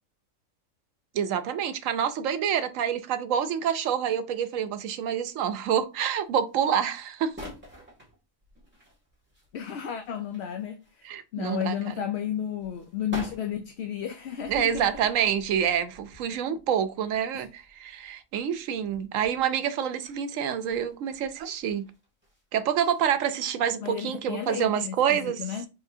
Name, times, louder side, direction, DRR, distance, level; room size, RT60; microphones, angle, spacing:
voice 1, 1.1-7.3 11.0-12.0 14.5-21.8 22.5-25.4, right 8 dB, 90° right, 1.0 m, -27 dB
sound 1, 5.3-5.9 6.2-6.8 7.1-11.2 11.5-19.4 20.0-22.4 22.7-23.0 23.4-23.5, equal, 10° right, 2.1 m, -48 dB
voice 2, 9.5-11.1 11.3-14.9 17.3-17.4 23.8-25.7, left 9 dB, 65° left, 0.8 m, -33 dB
4.7 x 3.5 x 2.7 m
omnidirectional pair, 1.3 m